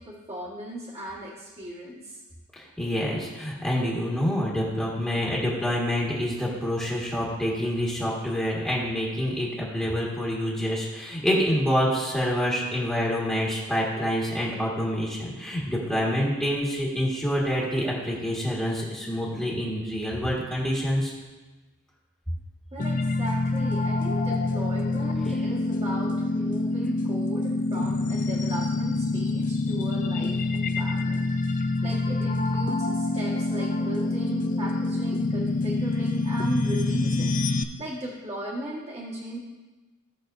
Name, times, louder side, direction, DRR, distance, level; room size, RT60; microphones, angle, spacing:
voice 1, 0.0-2.2 22.7-39.4, right 1 dB, 30° right, -7 dB, 1.5 m, -37 dB
voice 2, 2.5-21.1, equal, 5° left, -6 dB, 1.6 m, -27 dB
sound 1, 22.8-37.6, left 2 dB, 35° left, 0.5 m, -26 dB
16.5 x 6.1 x 2.6 m, 1.2 s
head